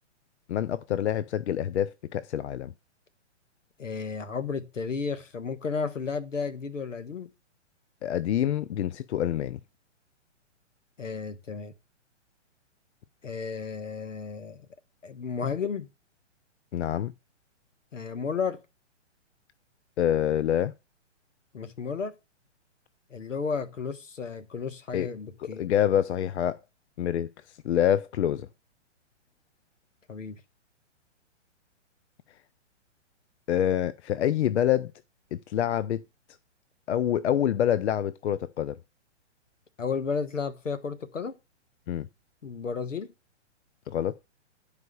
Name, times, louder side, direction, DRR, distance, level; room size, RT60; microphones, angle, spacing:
voice 1, 0.5-2.7 8.0-9.6 16.7-17.1 20.0-20.7 24.9-25.1 25.4-26.6 27.0-27.3 27.6-28.5 33.5-34.9 35.3-36.0 36.9-38.8 41.9-42.1 43.9-44.2, left 10 dB, 65° left, 0.6 m, -26 dB
voice 2, 3.8-7.3 11.0-11.7 13.2-14.6 15.0-15.9 17.9-18.6 21.5-22.2 23.1-25.7 30.1-30.4 39.8-41.4 42.4-43.1, left 5 dB, 90° left, 1.6 m, -33 dB
10.5 x 5.0 x 6.8 m
hypercardioid pair, 135°, 37 cm